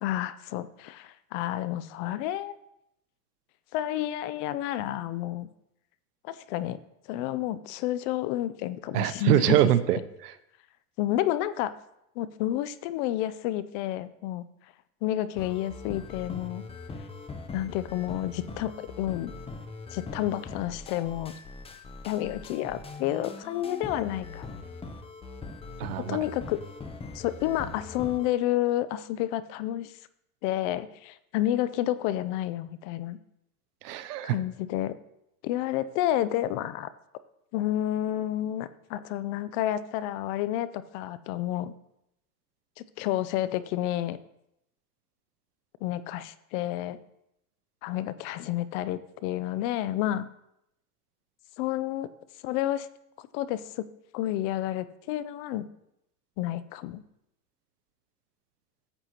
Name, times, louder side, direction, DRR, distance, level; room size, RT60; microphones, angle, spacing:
voice 1, 0.0-2.5 3.7-5.5 6.2-6.8 7.1-9.6 11.0-11.7 12.2-14.4 15.0-16.6 17.5-19.3 19.9-21.3 22.0-24.5 26.0-26.6 27.1-29.9 30.4-33.2 34.2-35.0 35.4-36.9 37.5-41.7 42.8-44.2 45.8-47.0 47.8-50.3 51.6-52.1 52.4-52.9 53.2-53.9 54.1-55.7 56.4-57.0, left 13 dB, 50° left, 15 dB, 0.6 m, -30 dB
voice 2, 8.9-10.3 25.8-26.2 33.8-34.4, right 12 dB, 80° right, 12 dB, 0.8 m, -24 dB
sound 1, 15.4-28.3, left 3 dB, 10° left, 0.7 m, -42 dB
14.0 x 8.0 x 2.9 m, 0.81 s
hypercardioid pair, 115°, 46 cm